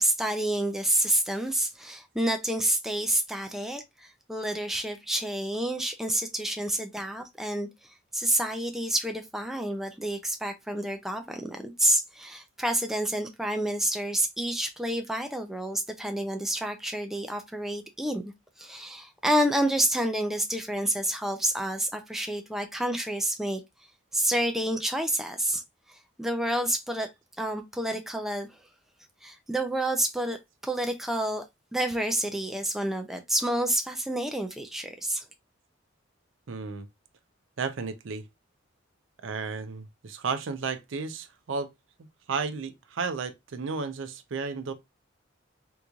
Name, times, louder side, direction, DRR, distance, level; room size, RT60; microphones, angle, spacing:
voice 1, 0.0-18.3 18.6-23.6 24.1-25.6 25.9-27.1 27.4-28.6 29.2-30.4 30.6-31.4 31.7-35.2, right 1 dB, ahead, 0.3 m, -29 dB
voice 2, 36.5-36.9 37.6-38.2 39.2-41.7 42.0-44.7, right 4 dB, 70° right, 0.5 m, -33 dB
3.8 x 3.0 x 2.3 m
head